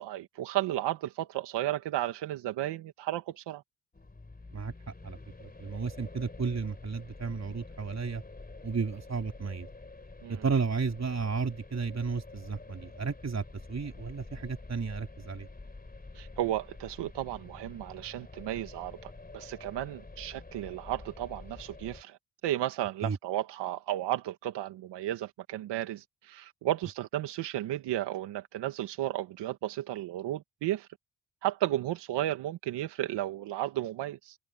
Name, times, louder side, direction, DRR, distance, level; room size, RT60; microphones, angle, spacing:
voice 1, 0.0-3.6 10.2-10.4 16.2-22.2 22.4-30.9 31.4-34.4, right 14 dB, 80° right, 1.9 m, -33 dB
sound 1, 3.9-22.0, left 3 dB, 20° left, 3.5 m, -48 dB
voice 2, 5.0-8.2 8.6-9.7 10.3-15.5 23.0-23.2, right 5 dB, 40° right, 3.7 m, -33 dB
supercardioid pair, 55°, 41 cm